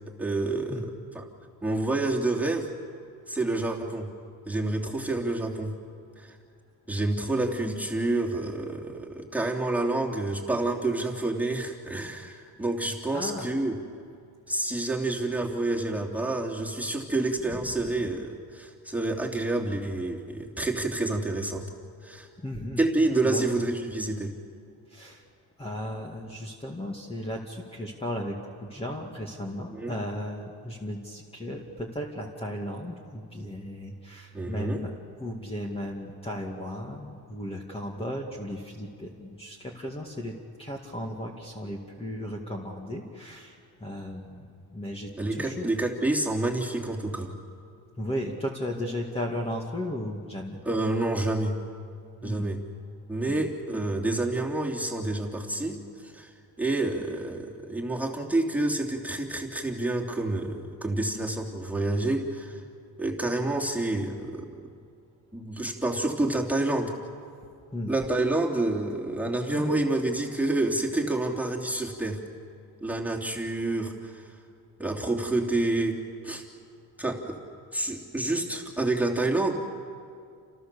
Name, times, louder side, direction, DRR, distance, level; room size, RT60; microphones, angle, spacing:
voice 1, 0.2-1.2 1.6-2.7 3.3-4.1 4.5-5.8 6.2-6.4 6.9-13.8 14.5-21.7 22.0-22.3 22.8-24.3 29.7-30.0 34.3-34.8 45.2-47.3 50.6-51.6 52.2-52.6 53.1-55.8 56.1-56.3 56.6-62.6 63.0-64.5 65.3-66.9 67.9-72.2 72.8-74.2 74.8-76.4 77.0-77.4 77.7-79.5, right 2 dB, 5° right, -2 dB, 3.0 m, -28 dB
voice 2, 13.1-13.5 22.4-22.8 23.2-23.5 24.9-25.2 25.6-34.9 35.2-45.7 48.0-50.6 52.2-52.5 53.3-53.4 67.7-67.9 69.2-69.9, left 1 dB, 15° left, -1 dB, 2.2 m, -35 dB
29.5 x 28.5 x 6.9 m, 2.4 s
cardioid pair, 150°, 40 cm